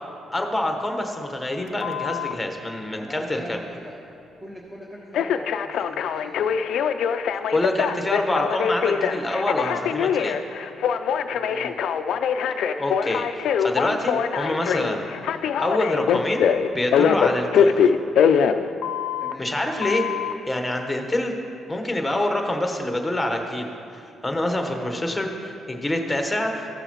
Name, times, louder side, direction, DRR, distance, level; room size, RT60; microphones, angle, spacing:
voice 1, 0.3-3.6 7.5-10.4 12.8-15.1 15.6-17.9 19.4-20.1 20.5-21.3 21.7-26.7, left 1 dB, 10° left, 3 dB, 1.1 m, -26 dB
Telephone, 1.8-2.3 5.1-19.3 19.8-20.3, left 7 dB, 75° left, 0.4 m, -23 dB
voice 2, 2.9-4.0 4.4-6.6 11.3-11.8 19.2-19.5 24.6-24.9, equal, 10° right, -4 dB, 1.1 m, -41 dB
15.0 x 6.8 x 3.0 m, 2.6 s
cardioid pair, 90°, 0 cm